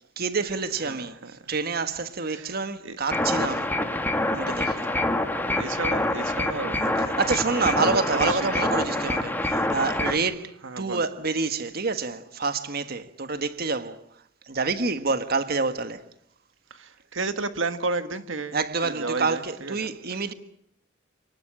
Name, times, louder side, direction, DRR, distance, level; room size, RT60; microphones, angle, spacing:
voice 1, 0.2-3.7 4.3-4.9 7.0-14.0 14.5-16.1 18.5-20.3, right 4 dB, 55° right, 1.5 m, -28 dB
voice 2, 0.9-1.3 2.3-2.5 2.8-3.0 5.6-7.2 7.8-8.5 10.6-11.0 16.7-18.6 18.8-19.9, right 3 dB, 80° right, 1.5 m, -32 dB
sound 1, 3.1-10.2, left 1 dB, 10° left, 2.2 m, -26 dB
29.0 x 19.0 x 8.8 m
head